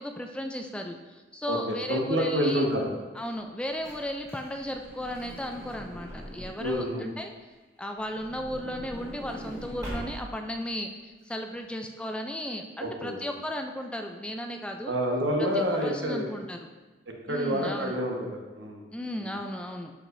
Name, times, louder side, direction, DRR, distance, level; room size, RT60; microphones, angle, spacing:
voice 1, 0.0-2.6 3.1-7.3 7.8-14.9 15.8-16.7 17.3-18.0 18.9-19.9, equal, 5° left, 4 dB, 0.3 m, -35 dB
voice 2, 1.5-2.9 6.6-7.1 12.8-13.2 14.9-16.3 17.3-18.8, equal, 80° right, 0 dB, 1.2 m, -28 dB
Truck / Door, 3.4-6.9 8.0-10.5 11.2-11.3 11.5-11.7, equal, 20° right, 1.5 m, -42 dB
11.5 x 4.9 x 2.6 m, 1.2 s
head